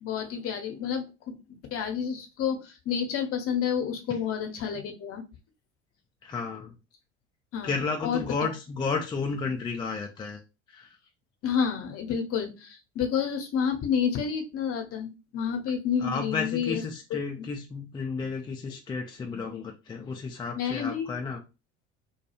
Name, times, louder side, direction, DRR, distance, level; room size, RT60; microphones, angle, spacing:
voice 1, 0.0-5.2 7.5-8.5 11.4-16.8 17.4-17.5 20.6-21.1, left 7 dB, 40° left, 5 dB, 0.8 m, -30 dB
voice 2, 6.2-6.7 7.6-10.4 10.7-11.0 16.0-21.4, left 4 dB, 15° left, 3 dB, 0.4 m, -32 dB
2.3 x 2.2 x 2.9 m, 0.28 s
figure-of-eight pair, 70°, 35 cm